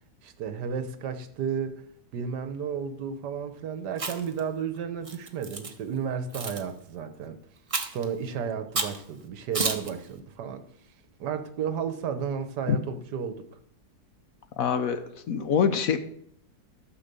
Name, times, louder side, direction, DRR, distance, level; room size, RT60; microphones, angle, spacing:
voice 1, 0.2-1.8 2.1-7.4 7.9-10.6 11.2-13.3, right 7 dB, 70° right, 1.5 m, -32 dB
Chewing mastication, 3.9-4.4 5.1-5.7 6.3-6.6 7.7-8.0 8.8-9.0 9.5-9.9, right 3 dB, 30° right, 0.7 m, -30 dB
voice 2, 14.6-16.0, left 7 dB, 60° left, 1.1 m, -25 dB
13.0 x 5.3 x 6.7 m
omnidirectional pair, 1.9 m